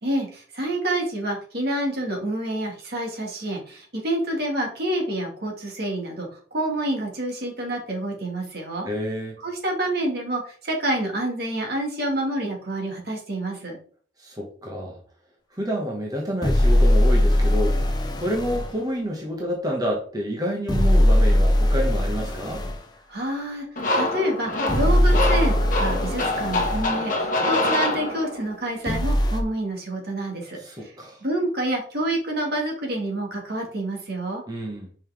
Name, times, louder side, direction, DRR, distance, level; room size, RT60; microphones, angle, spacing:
voice 1, 0.0-8.9 9.4-13.8 23.1-23.7 23.9-30.9 31.2-34.4, right 1 dB, 60° right, 1 dB, 2.1 m, -28 dB
voice 2, 8.8-9.4 14.2-15.0 15.5-22.6 30.6-31.2 34.5-34.9, equal, 20° right, -1 dB, 1.3 m, -29 dB
sound 1, 16.4-18.7 20.7-22.8 24.7-26.9 28.9-29.4, left 1 dB, 20° left, 0.7 m, -20 dB
sound 2, 23.8-28.6, left 2 dB, 45° left, 1.4 m, -25 dB
5.7 x 5.3 x 3.6 m, 0.43 s
head